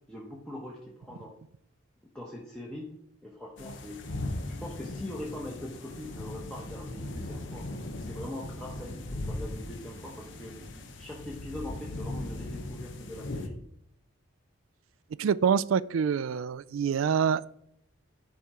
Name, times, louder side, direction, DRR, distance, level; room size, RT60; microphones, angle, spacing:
voice 1, 0.1-1.3 2.1-2.9 3.2-4.1 4.6-7.7 7.9-10.6 11.0-13.6, left 1 dB, 5° left, -3 dB, 1.0 m, -42 dB
sound 1, 3.6-13.5, left 2 dB, 65° left, 0.9 m, -39 dB
sound 2, 4.0-11.1, equal, 30° right, 1.0 m, -54 dB
voice 2, 15.2-17.5, right 7 dB, 80° right, 19 dB, 0.4 m, -26 dB
10.5 x 4.3 x 4.9 m, 0.76 s
head